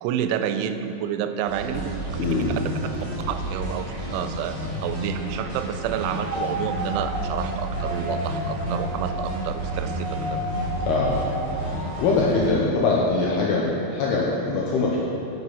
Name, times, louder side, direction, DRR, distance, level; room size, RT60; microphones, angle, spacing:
voice 1, 0.0-1.8 3.3-10.4, right 9 dB, 90° right, 9 dB, 3.0 m, -29 dB
sound 1, 1.5-12.5, right 1 dB, 60° right, 2.2 m, -31 dB
voice 2, 2.2-2.6 10.9-11.3 11.6-15.0, left 3 dB, 85° left, -3 dB, 2.3 m, -23 dB
sound 2, 5.9-11.9, right 1 dB, 60° left, 1.1 m, -33 dB
8.3 x 7.0 x 6.1 m, 3.0 s
omnidirectional pair, 5.4 m